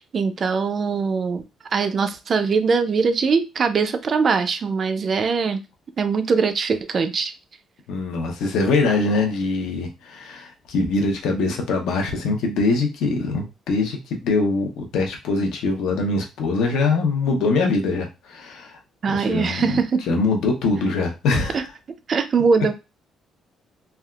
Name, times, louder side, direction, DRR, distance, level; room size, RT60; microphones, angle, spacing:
voice 1, 0.0-1.5 1.7-5.6 6.0-7.3 19.0-20.0 21.5-21.6 22.1-22.7, right 5 dB, 35° right, 0.3 m, -21 dB
voice 2, 7.9-18.8 19.1-19.8 20.1-21.7, left 3 dB, 90° left, 0.7 m, -23 dB
3.3 x 2.3 x 2.3 m
cardioid pair, 175°, 0 cm